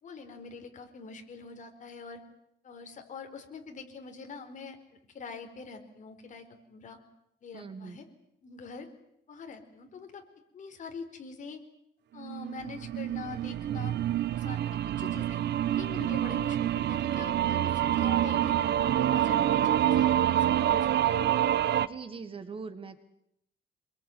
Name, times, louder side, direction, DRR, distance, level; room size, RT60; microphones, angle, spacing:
voice 1, 0.0-2.2 2.6-4.8 5.1-7.0 7.4-8.1 8.4-8.9 9.3-10.2 10.5-11.6 12.1-14.0 14.3-18.6 18.9-21.3 21.7-21.9, left 4 dB, 40° left, 5 dB, 4.5 m, -44 dB
voice 2, 7.5-8.0 21.8-23.0, right 5 dB, 30° right, 11 dB, 1.7 m, -41 dB
sound 1, 12.2-21.9, right 11 dB, 65° right, 1.0 m, -27 dB
27.0 x 22.0 x 9.3 m, 0.79 s
cardioid pair, 170°, 19 cm